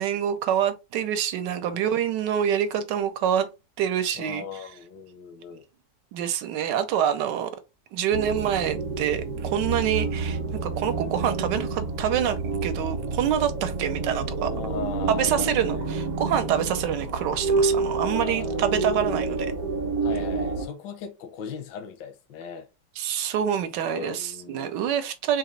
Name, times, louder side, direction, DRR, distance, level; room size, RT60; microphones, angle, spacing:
voice 1, 0.0-3.5 3.8-4.4 6.1-7.5 7.9-14.5 15.1-19.5 23.0-25.4, right 9 dB, 85° right, 1.3 m, -26 dB
voice 2, 4.1-5.7 14.4-15.9 18.1-18.7 20.0-22.7 23.9-24.9, left 7 dB, 85° left, 1.4 m, -38 dB
sound 1, 8.1-20.7, right 4 dB, 65° right, 1.1 m, -28 dB
3.9 x 2.8 x 3.1 m
omnidirectional pair, 1.9 m